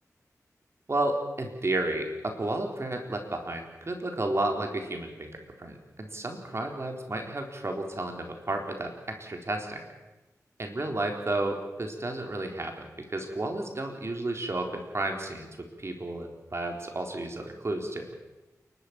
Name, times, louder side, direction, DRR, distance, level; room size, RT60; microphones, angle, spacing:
voice 1, 0.9-8.9 9.2-9.8 10.6-18.1, right 2 dB, 45° right, 3 dB, 4.1 m, -32 dB
28.0 x 12.5 x 8.9 m, 1.1 s
wide cardioid pair, 60°, 6 cm